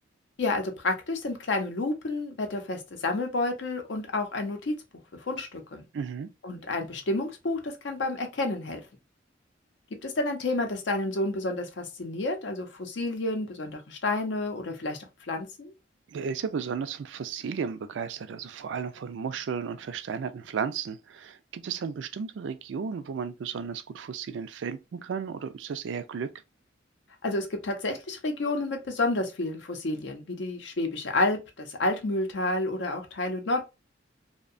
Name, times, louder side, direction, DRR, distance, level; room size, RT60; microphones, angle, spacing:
voice 1, 0.4-4.7 5.1-5.9 6.4-8.8 10.0-15.7 27.2-33.7, left 2 dB, 70° left, 0.6 m, -30 dB
voice 2, 5.9-6.3 16.1-26.3, right 6 dB, 75° right, 0.3 m, -34 dB
2.7 x 2.1 x 2.4 m
head